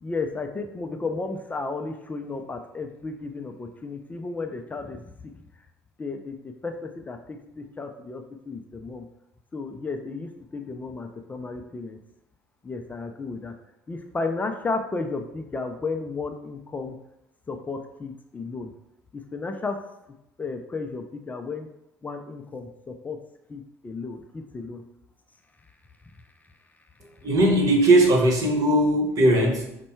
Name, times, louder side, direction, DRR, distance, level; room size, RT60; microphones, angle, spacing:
voice 1, 0.0-5.3 6.0-9.1 9.5-12.0 12.6-13.5 13.9-17.0 17.5-18.7 19.1-19.8 20.4-21.7 22.0-23.2 23.5-24.8, left 3 dB, 20° left, 5 dB, 0.4 m, -33 dB
voice 2, 27.2-29.8, right 1 dB, 50° right, 2 dB, 1.2 m, -19 dB
5.2 x 2.2 x 4.4 m, 0.83 s
supercardioid pair, 80°, 7 cm